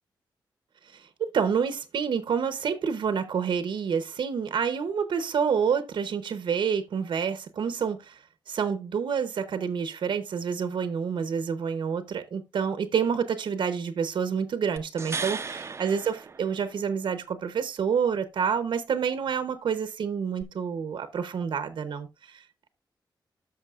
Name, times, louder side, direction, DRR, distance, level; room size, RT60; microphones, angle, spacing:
voice 1, 0.9-8.2 8.5-22.7, right 6 dB, 80° right, 0.8 m, -28 dB
sound 1, 14.8-17.0 20.4-20.5, right 4 dB, 35° right, 0.5 m, -36 dB
13.0 x 5.8 x 2.4 m
wide cardioid pair, 125°, 8 cm